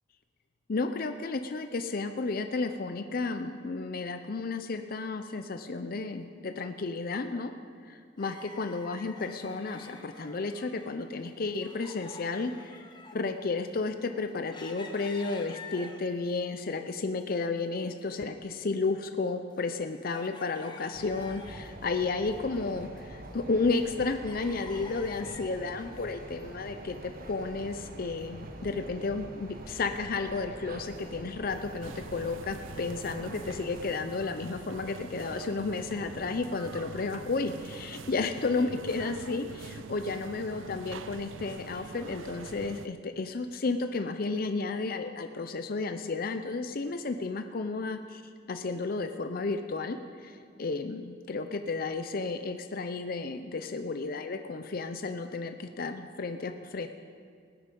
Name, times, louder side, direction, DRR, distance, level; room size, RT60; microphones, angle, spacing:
voice 1, 0.7-7.5 7.8-12.9 13.1-48.2 48.5-56.9, left 3 dB, 50° left, 7 dB, 0.5 m, -32 dB
sound 1, 8.2-11.0 11.2-16.3 16.8-17.7 17.9-18.0 18.6-21.8 22.2-23.7 24.0-26.0 26.6-26.7, left 3 dB, 25° left, 1.0 m, -49 dB
sound 2, 20.9-33.9, right 1 dB, 50° right, 1.2 m, -45 dB
sound 3, 31.8-42.9, right 4 dB, 90° right, 0.5 m, -44 dB
20.0 x 9.0 x 5.3 m, 2.2 s
head